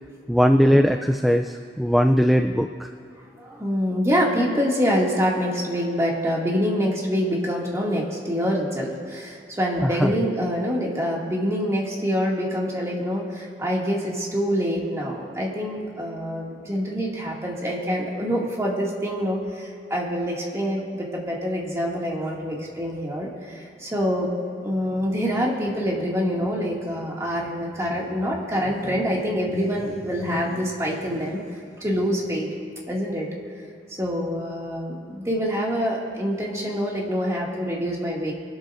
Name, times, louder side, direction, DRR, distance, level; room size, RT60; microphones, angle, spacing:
voice 1, 0.3-2.9 9.8-10.1, equal, ahead, 4 dB, 0.3 m, -19 dB
voice 2, 3.2-24.3 24.6-31.5 31.8-32.5 32.9-33.3 34.0-38.3, equal, 15° right, -4 dB, 2.2 m, -26 dB
23.5 x 12.5 x 2.6 m, 2.5 s
head